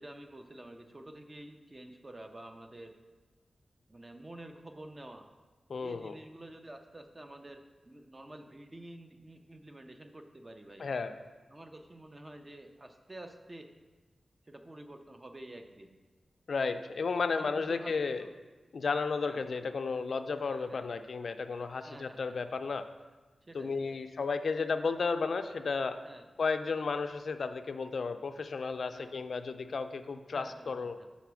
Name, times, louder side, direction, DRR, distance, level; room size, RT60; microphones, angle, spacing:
voice 1, 0.0-3.0 3.9-5.3 5.8-10.9 11.5-13.7 14.5-15.9 17.3-18.3 19.2-19.5 20.4-20.9 21.8-22.6 23.4-24.0 26.0-26.3 28.9-29.1 30.3-31.1, right 1 dB, 25° right, 5 dB, 0.5 m, -49 dB
voice 2, 5.7-6.1 10.8-11.1 16.5-18.2 18.7-22.8 23.5-26.0 26.4-31.0, left 4 dB, 70° left, 9 dB, 0.4 m, -33 dB
5.7 x 4.1 x 6.0 m, 1.3 s
wide cardioid pair, 115°, 0 cm